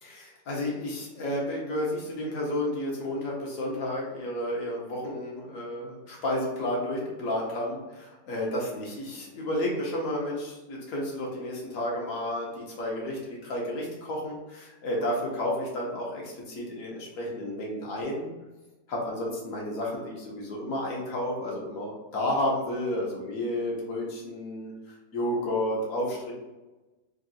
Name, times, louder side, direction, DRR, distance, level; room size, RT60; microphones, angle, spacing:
voice 1, 0.0-18.3 18.9-26.3, left 1 dB, 55° left, -3 dB, 1.4 m, -31 dB
3.5 x 2.5 x 4.1 m, 1.1 s
omnidirectional pair, 1.8 m